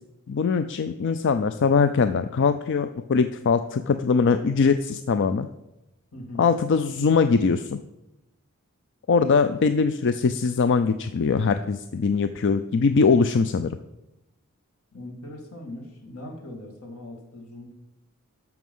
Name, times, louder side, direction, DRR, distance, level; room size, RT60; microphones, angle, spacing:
voice 1, 0.3-5.5 6.4-7.8 9.1-13.7, left 5 dB, 55° left, 10 dB, 0.4 m, -22 dB
voice 2, 6.1-6.5 14.9-17.7, left 1 dB, 80° left, 1 dB, 2.6 m, -40 dB
14.0 x 6.0 x 5.5 m, 0.95 s
head